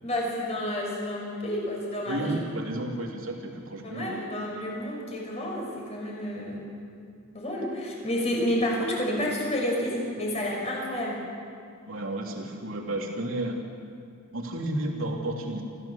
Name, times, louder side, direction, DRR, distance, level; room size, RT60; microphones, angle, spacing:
voice 1, 0.0-2.4 3.8-6.6 7.3-11.2, left 1 dB, 30° left, -2 dB, 6.0 m, -30 dB
voice 2, 2.0-4.2 11.9-13.6 14.3-15.6, right 1 dB, 70° right, 0 dB, 3.1 m, -32 dB
27.0 x 15.0 x 7.3 m, 2.4 s
head